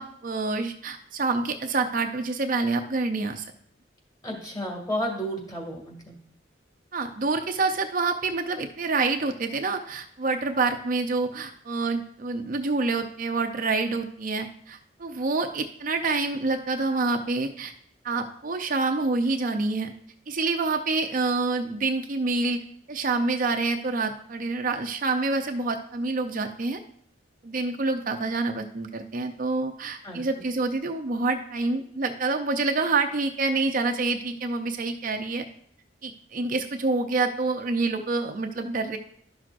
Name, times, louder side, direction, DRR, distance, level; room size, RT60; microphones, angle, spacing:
voice 1, 0.0-3.4 6.9-17.7 18.0-19.9 20.3-22.6 22.9-26.8 27.4-35.5 36.0-39.0, right 3 dB, 50° right, 5 dB, 0.5 m, -27 dB
voice 2, 4.2-6.2 30.0-30.4, equal, 20° left, 0 dB, 2.0 m, -32 dB
12.0 x 6.0 x 2.5 m, 0.65 s
head